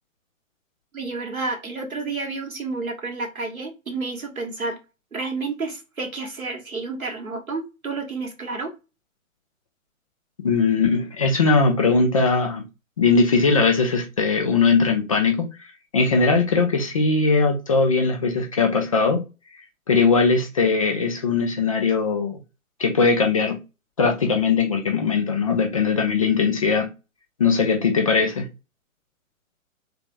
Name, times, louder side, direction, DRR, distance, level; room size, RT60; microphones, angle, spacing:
voice 1, 0.9-4.8 5.1-8.7, right 3 dB, 90° right, 1.3 m, -30 dB
voice 2, 10.4-12.6 13.0-15.5 15.9-19.2 19.9-22.4 22.8-23.6 24.0-26.9 27.4-28.5, left 4 dB, 25° left, 0.4 m, -20 dB
3.4 x 3.2 x 2.4 m
figure-of-eight pair, 130°, 41 cm